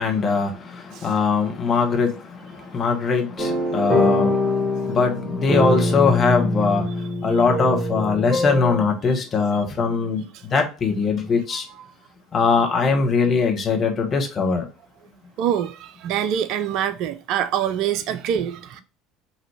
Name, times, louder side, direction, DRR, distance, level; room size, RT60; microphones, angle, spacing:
voice 1, 0.0-10.2 10.5-11.7 12.3-14.7, left 4 dB, 35° left, 1.2 m, -21 dB
sound 1, 3.4-8.8, left 1 dB, 20° right, 1.6 m, -23 dB
voice 2, 15.4-18.8, right 9 dB, 55° right, 0.4 m, -25 dB
5.5 x 2.8 x 3.3 m
figure-of-eight pair, 65°, 0 cm